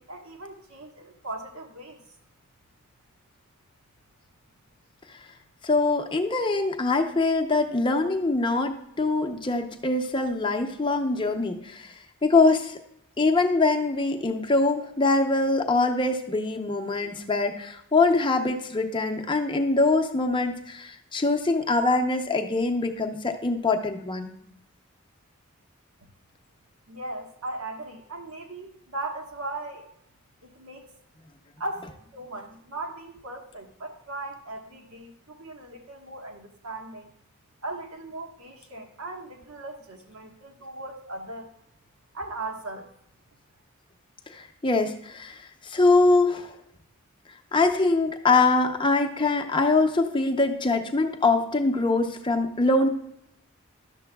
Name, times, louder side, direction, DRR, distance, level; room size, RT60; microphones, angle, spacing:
voice 1, 0.0-2.0 26.9-29.9 30.4-30.9 31.6-37.1 37.6-41.5 42.1-42.9, right 2 dB, 85° right, 1 dB, 1.4 m, -38 dB
voice 2, 5.6-11.9 12.2-12.8 13.2-24.3 44.3-46.6 47.5-52.9, left 3 dB, 20° left, 5 dB, 0.6 m, -23 dB
11.5 x 6.8 x 2.3 m, 0.75 s
head